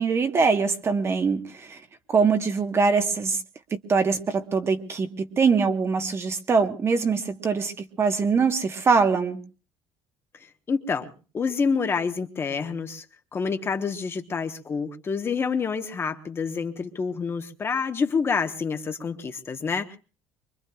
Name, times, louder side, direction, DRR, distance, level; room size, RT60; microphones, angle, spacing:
voice 1, 0.0-1.8 2.1-3.4 3.7-9.4, right 5 dB, 30° right, 8 dB, 1.2 m, -23 dB
voice 2, 10.7-13.0 13.3-20.0, left 5 dB, 25° left, 7 dB, 1.1 m, -28 dB
24.5 x 22.5 x 2.3 m, 0.35 s
cardioid pair, 145°, 9 cm